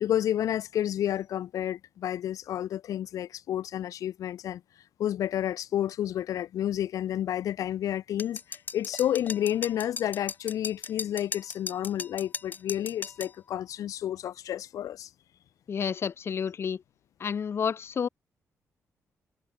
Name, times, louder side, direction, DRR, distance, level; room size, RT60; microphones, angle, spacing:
voice 1, 0.0-4.6 5.0-15.1, left 11 dB, 85° left, 1.6 m, -30 dB
sound 1, 8.2-13.3, left 4 dB, 30° left, 3.3 m, -37 dB
voice 2, 15.7-16.8 17.2-18.1, left 7 dB, 50° left, 1.6 m, -30 dB
cardioid pair, 125°, 6 cm